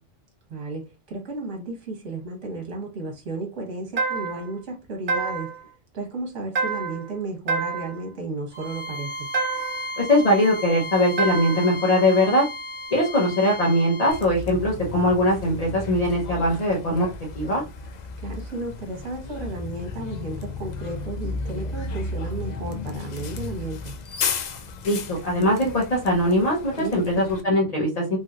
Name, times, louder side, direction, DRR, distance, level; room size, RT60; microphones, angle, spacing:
voice 1, 0.5-5.5 5.9-9.3 18.2-23.9 26.8-27.2, right 2 dB, 75° right, 2 dB, 1.4 m, -33 dB
sound 1, 4.0-4.5 5.1-5.6 6.6-7.1 7.5-8.0 9.3-9.9 11.2-11.7, right 4 dB, 50° right, 0.9 m, -27 dB
Bowed string instrument, 8.5-14.3, equal, 55° left, 1.3 m, -35 dB
voice 2, 10.0-12.4 12.9-17.1 17.3-17.6 24.8-28.2, left 1 dB, 35° left, -3 dB, 0.8 m, -21 dB
Bus, 14.1-27.4, left 4 dB, 80° left, 0.3 m, -34 dB
3.1 x 2.8 x 2.4 m, 0.27 s
omnidirectional pair, 1.3 m